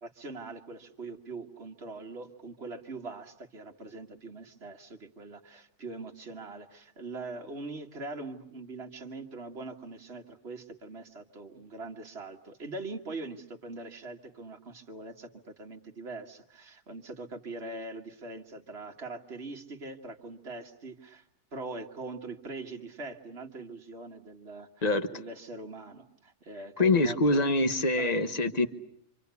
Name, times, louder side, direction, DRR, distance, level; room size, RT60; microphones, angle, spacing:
voice 1, 0.0-21.2 21.5-27.5 28.0-28.3, right 3 dB, 40° right, 3 dB, 2.0 m, -42 dB
voice 2, 26.8-28.7, left 2 dB, 30° left, 10 dB, 1.1 m, -25 dB
26.5 x 26.5 x 8.3 m, 0.70 s
omnidirectional pair, 1.7 m